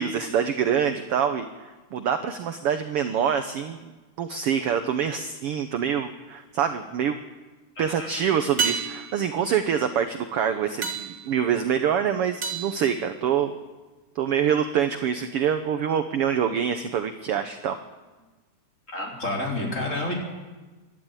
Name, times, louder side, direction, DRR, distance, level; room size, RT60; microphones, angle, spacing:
voice 1, 0.0-3.9 4.2-7.2 7.8-13.5 14.1-17.8, right 8 dB, 70° right, 9 dB, 1.4 m, -25 dB
sound 1, 6.3-6.9 8.6-13.7 18.2-18.3, right 5 dB, 35° right, 1.7 m, -33 dB
voice 2, 7.8-8.1 18.9-20.1, left 2 dB, 20° left, 0 dB, 4.2 m, -29 dB
25.5 x 12.0 x 9.1 m, 1.2 s
omnidirectional pair, 3.7 m